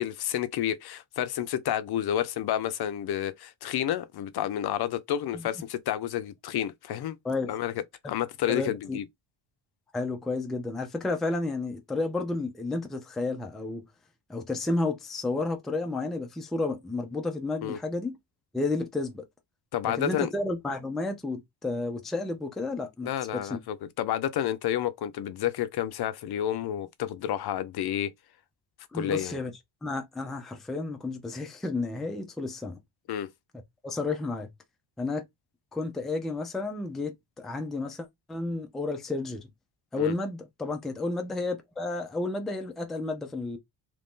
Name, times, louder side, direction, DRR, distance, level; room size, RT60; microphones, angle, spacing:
voice 1, 0.0-7.2 7.5-7.7 8.1-9.0 17.6-17.8 19.7-20.3 23.0-28.1 28.9-29.4 33.1-33.3 40.0-40.1, left 11 dB, 60° left, 0.5 m, -30 dB
voice 2, 8.5-9.0 9.9-13.8 14.3-18.2 18.5-19.2 19.9-23.6 28.9-29.5 29.8-32.8 33.8-34.5 35.0-35.2 35.7-39.5 39.9-43.6, left 3 dB, ahead, 0.4 m, -31 dB
2.9 x 2.7 x 3.5 m
cardioid pair, 175°, 44 cm